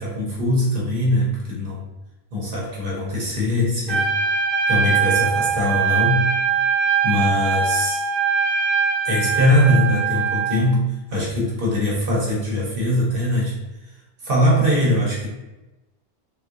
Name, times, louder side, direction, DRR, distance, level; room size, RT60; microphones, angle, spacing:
voice 1, 0.0-1.8 2.3-4.1 4.7-6.3 7.0-8.0 9.0-13.6 14.2-15.3, left 1 dB, 60° right, -4 dB, 1.0 m, -21 dB
Trumpet, 3.9-10.6, right 5 dB, 85° right, 1.0 m, -21 dB
3.5 x 2.7 x 2.4 m, 1.0 s
omnidirectional pair, 1.1 m